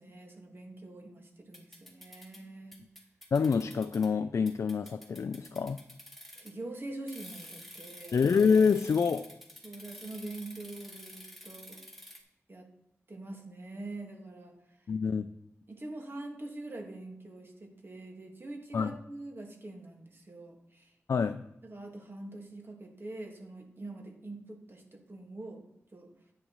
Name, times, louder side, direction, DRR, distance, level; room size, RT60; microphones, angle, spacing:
voice 1, 0.0-2.8 6.4-8.2 9.6-11.8 12.5-12.7 13.1-14.5 15.7-20.9 21.6-26.1, right 2 dB, 45° right, 2 dB, 1.7 m, -44 dB
sound 1, 1.5-2.4 2.7-4.1 4.5-6.6 7.1-12.2, left 1 dB, 5° left, 2.1 m, -50 dB
voice 2, 3.3-5.8 8.1-9.3 14.9-15.3 18.7-19.0 21.1-21.4, left 5 dB, 75° left, 9 dB, 0.3 m, -26 dB
10.0 x 9.3 x 3.1 m, 0.82 s
wide cardioid pair, 65°, 5 cm